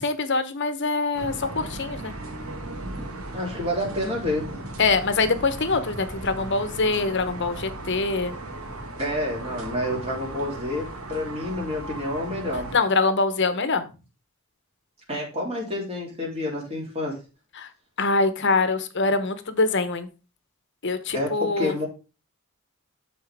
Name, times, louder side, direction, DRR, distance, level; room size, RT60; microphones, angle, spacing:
voice 1, 0.0-2.1 4.8-8.3 12.7-13.8 17.6-17.7 18.0-20.1 20.8-21.7, left 3 dB, 55° left, 11 dB, 1.0 m, -24 dB
sound 1, 1.1-12.8, right 2 dB, 80° right, 1.7 m, -37 dB
voice 2, 3.3-4.6 9.0-12.7 15.1-17.1 21.1-21.9, left 1 dB, 30° right, -2 dB, 3.2 m, -29 dB
12.5 x 4.4 x 3.5 m, 0.31 s
head